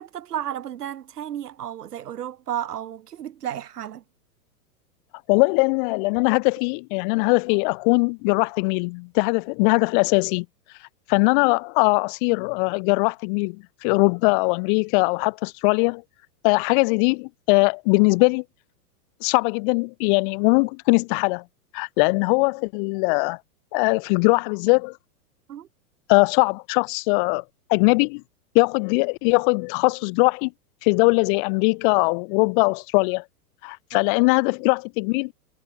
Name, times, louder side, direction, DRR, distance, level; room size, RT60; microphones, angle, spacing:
voice 1, 0.0-4.0 25.5-25.7 34.2-34.3, right 10 dB, 80° right, 3.1 m, -33 dB
voice 2, 5.3-10.4 11.1-13.6 13.8-16.0 16.4-18.4 19.2-21.4 21.7-23.4 23.7-24.9 26.1-27.4 27.7-28.2 28.5-30.5 30.8-33.2 33.6-35.3, left 34 dB, 35° left, 1.6 m, -21 dB
hypercardioid pair, 155°, 46 cm